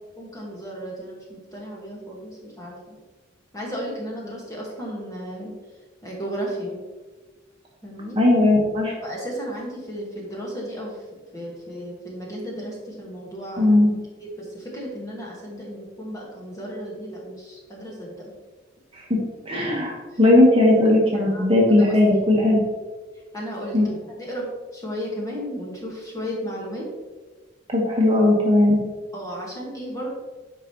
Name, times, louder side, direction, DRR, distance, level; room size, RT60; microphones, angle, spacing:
voice 1, 0.2-3.0 3.5-5.5 6.0-6.8 7.8-8.2 9.0-11.0 11.3-13.9 14.4-18.1 21.1-21.5 23.3-24.4 24.7-26.8 29.1-30.1, equal, 15° left, -4 dB, 1.6 m, -34 dB
voice 2, 8.2-8.9 13.6-13.9 19.1-19.2 19.5-22.6 23.7-23.9 27.7-28.8, left 1 dB, 30° right, -3 dB, 1.3 m, -17 dB
8.9 x 5.2 x 3.0 m, 1.3 s
head